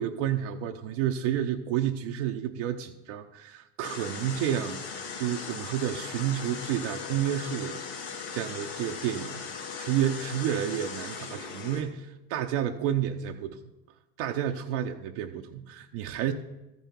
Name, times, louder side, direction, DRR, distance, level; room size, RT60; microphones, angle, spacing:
voice 1, 0.0-7.8 8.3-9.5 9.8-13.6 14.2-16.3, right 10 dB, 70° right, 3 dB, 0.7 m, -30 dB
sound 1, 3.8-11.8, left 5 dB, 65° left, 2.8 m, -38 dB
13.5 x 5.4 x 4.5 m, 0.99 s
hypercardioid pair, 85°, 36 cm